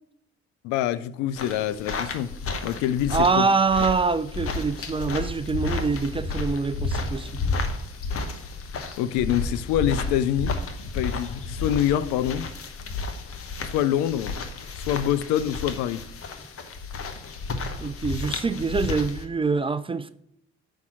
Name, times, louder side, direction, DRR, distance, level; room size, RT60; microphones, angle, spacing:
voice 1, 0.6-2.3 2.6-3.5 9.0-10.6 10.9-12.4 13.6-14.3 14.8-16.0, left 11 dB, 65° left, 0.5 m, -25 dB
sound 1, 1.4-19.2, left 3 dB, 45° left, 1.0 m, -32 dB
voice 2, 3.1-7.4 17.8-20.1, right 4 dB, 15° right, 0.4 m, -25 dB
5.5 x 4.5 x 5.9 m
figure-of-eight pair, 40°, 31 cm